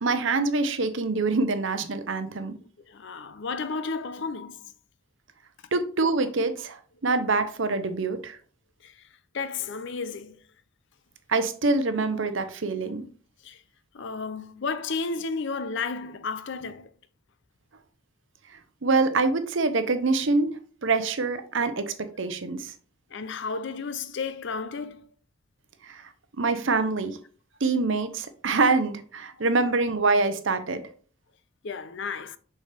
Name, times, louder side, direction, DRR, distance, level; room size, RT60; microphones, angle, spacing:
voice 1, 0.0-2.6 5.7-6.8 7.0-8.4 11.3-13.1 18.8-20.5 20.8-22.7 25.8-26.1 26.4-27.2 27.6-30.8, right 3 dB, 60° right, 0.7 m, -25 dB
voice 2, 2.9-4.7 8.8-9.1 9.3-10.4 13.4-13.6 13.9-16.9 23.1-25.1 31.6-32.4, left 4 dB, 55° left, 0.5 m, -33 dB
6.5 x 5.0 x 3.4 m
head